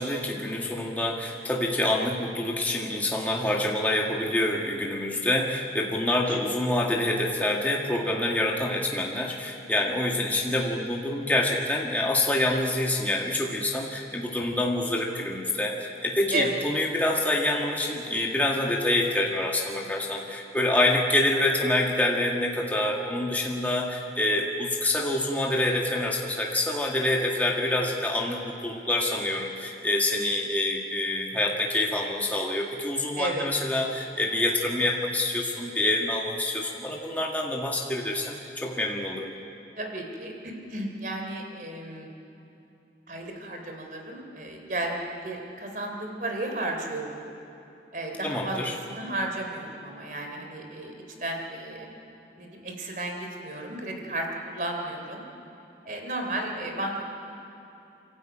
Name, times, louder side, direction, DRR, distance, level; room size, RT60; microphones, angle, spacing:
voice 1, 0.0-39.4 48.2-48.8, left 1 dB, 10° left, -1 dB, 1.6 m, -26 dB
voice 2, 33.1-33.5 39.8-42.1 43.1-47.2 47.9-48.6 48.8-50.9 51.2-51.9 52.4-55.2 55.8-57.1, right 2 dB, 50° right, 2 dB, 3.4 m, -33 dB
28.5 x 13.0 x 8.9 m, 3.0 s
head